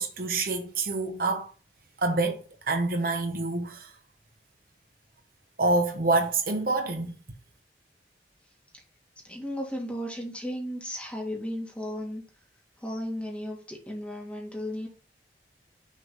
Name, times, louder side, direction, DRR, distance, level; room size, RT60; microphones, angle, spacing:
voice 1, 0.0-1.5 2.0-3.9 5.6-7.1, right 3 dB, 55° right, 0.9 m, -27 dB
voice 2, 9.2-12.2 12.8-14.9, equal, 5° left, 1.8 m, -35 dB
6.4 x 3.8 x 5.4 m
head